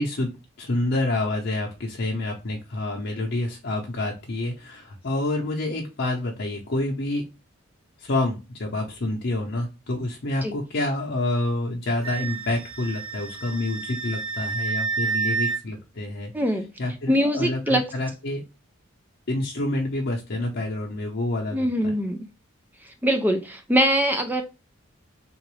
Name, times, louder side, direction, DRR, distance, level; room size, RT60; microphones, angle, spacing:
voice 1, 0.0-7.2 8.0-16.3 16.8-18.4 19.3-21.9, left 2 dB, 55° left, -1 dB, 0.7 m, -28 dB
Wind instrument woodwind instrument, 12.0-15.6, right 5 dB, 80° right, 0.6 m, -29 dB
voice 2, 16.3-16.7 17.1-17.9 21.5-22.2 22.8-24.4, equal, 10° right, 6 dB, 0.3 m, -23 dB
3.7 x 2.5 x 3.1 m, 0.28 s
head